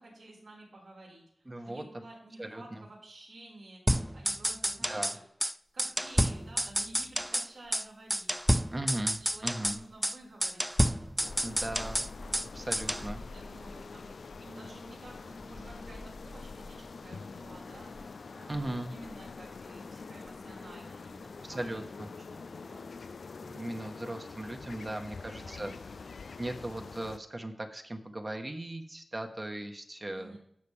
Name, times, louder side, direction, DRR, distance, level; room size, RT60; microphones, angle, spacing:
voice 1, 0.0-3.8 4.1-5.2 5.7-8.3 9.0-11.0 12.9-22.9 25.4-26.1 30.1-30.4, right 2 dB, 85° right, -4 dB, 4.4 m, -52 dB
voice 2, 1.5-1.8 2.4-2.8 4.9-5.1 8.7-9.8 11.4-12.0 12.5-13.2 18.5-18.9 21.4-21.8 23.4-25.7 26.4-30.4, right 1 dB, 30° right, 4 dB, 1.3 m, -38 dB
sound 1, 3.9-5.2 5.4-5.5 5.8-7.5 7.7-7.9 8.1-9.8 10.0-10.2 10.4-12.5 12.7-13.1, equal, 5° right, 0.4 m, -29 dB
sound 2, 6.2-7.0 7.3-20.8 21.1-21.4, left 2 dB, 40° left, 0.9 m, -50 dB
sound 3, 11.2-27.2, left 4 dB, 75° left, 0.4 m, -45 dB
17.0 x 5.8 x 3.4 m, 0.70 s
wide cardioid pair, 60°, 0 cm